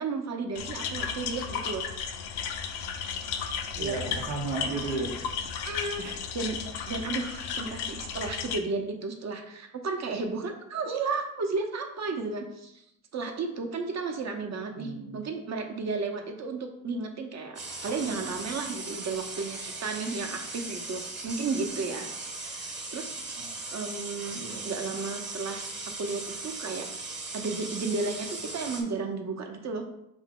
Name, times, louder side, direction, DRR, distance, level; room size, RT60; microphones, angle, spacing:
voice 1, 0.0-1.8 3.7-4.1 5.6-6.6 6.9-12.8 13.1-22.1 22.4-23.1 23.7-25.7 26.0-26.9 27.3-29.8, right 4 dB, 45° right, 4 dB, 0.8 m, -33 dB
sound 1, 0.6-8.6, left 7 dB, 90° left, 0.6 m, -34 dB
voice 2, 3.7-5.2 6.0-6.2 14.8-15.3 23.3-23.5 24.4-24.6, right 3 dB, 80° right, 0 dB, 0.8 m, -34 dB
sound 2, 17.6-28.8, right 3 dB, 30° right, 1.1 m, -38 dB
4.8 x 2.6 x 3.7 m, 0.80 s
supercardioid pair, 75°, 37 cm